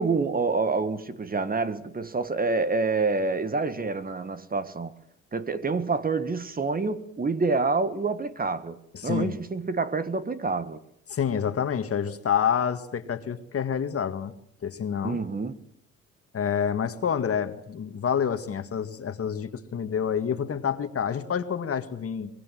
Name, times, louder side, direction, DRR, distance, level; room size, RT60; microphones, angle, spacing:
voice 1, 0.0-4.9 5.3-10.8 15.0-15.6, right 4 dB, 30° right, 1.6 m, -27 dB
voice 2, 8.9-9.3 11.1-14.3 14.6-15.2 16.3-22.3, left 7 dB, 50° left, 1.9 m, -28 dB
23.0 x 21.5 x 7.6 m
cardioid pair, 90°, 30 cm